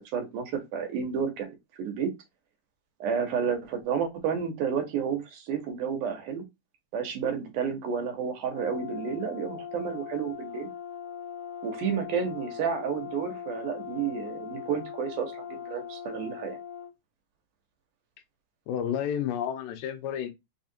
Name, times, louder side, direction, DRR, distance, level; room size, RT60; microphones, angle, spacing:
voice 1, 0.1-1.5 1.8-2.1 3.0-6.4 6.9-10.7 11.6-16.6, right 7 dB, 75° right, 2.5 m, -31 dB
Brass instrument, 8.5-16.9, left 8 dB, 45° left, 1.5 m, -40 dB
voice 2, 18.7-20.3, left 9 dB, 90° left, 2.4 m, -30 dB
5.7 x 2.4 x 2.7 m
omnidirectional pair, 3.8 m